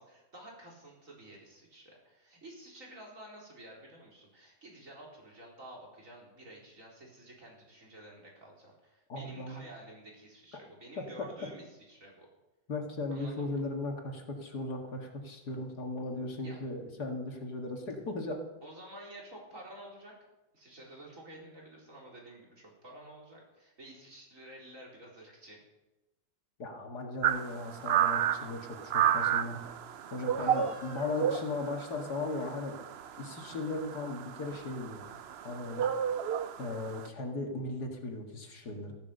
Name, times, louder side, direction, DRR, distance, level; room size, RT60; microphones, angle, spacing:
voice 1, 0.0-12.3 13.1-13.5 16.4-16.6 18.6-20.1 20.5-25.6 30.4-31.1 34.5-34.6, right 1 dB, 45° right, -2 dB, 4.3 m, -51 dB
voice 2, 9.1-9.7 12.7-18.4 26.6-29.6 30.1-32.8 33.2-35.0 35.4-35.9 36.6-38.9, left 2 dB, 65° left, 2 dB, 2.5 m, -37 dB
sound 1, 27.2-37.1, right 9 dB, 80° right, 0.5 m, -32 dB
14.5 x 12.0 x 6.6 m, 1.0 s
omnidirectional pair, 1.9 m